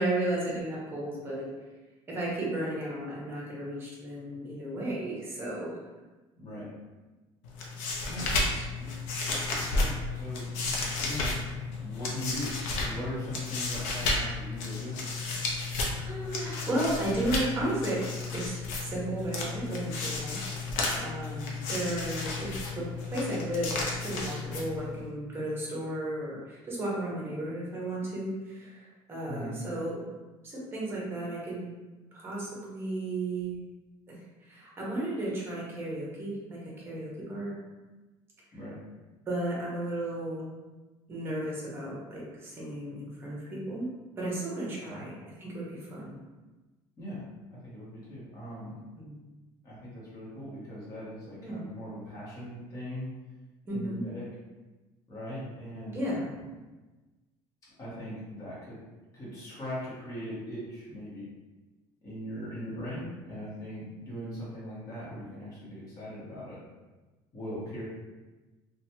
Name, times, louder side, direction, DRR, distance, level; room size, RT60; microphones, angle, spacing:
voice 1, 0.0-1.5 2.1-5.8 8.5-8.9 15.9-18.0 18.3-20.7 21.0-30.0 30.4-31.7 32.1-33.6 34.1-37.5 39.3-40.5 41.1-46.2 48.9-49.1 51.4-51.6 53.7-54.0 55.9-56.3 62.9-63.1, right 1 dB, 20° right, -5 dB, 0.9 m, -34 dB
voice 2, 6.3-6.6 8.1-8.3 9.8-10.5 11.0-11.3 11.8-15.0 29.3-29.5 38.5-38.7 44.8-45.0 47.0-47.2 47.5-48.8 49.6-53.1 53.7-54.2 55.1-56.4 57.8-58.7 59.1-61.3 62.0-63.0 63.2-66.6 67.3-67.8, equal, 30° left, -9 dB, 1.2 m, -40 dB
sound 1, 7.4-25.0, left 3 dB, 85° left, 0.6 m, -33 dB
2.9 x 2.3 x 2.8 m, 1.2 s
cardioid pair, 140°, 11 cm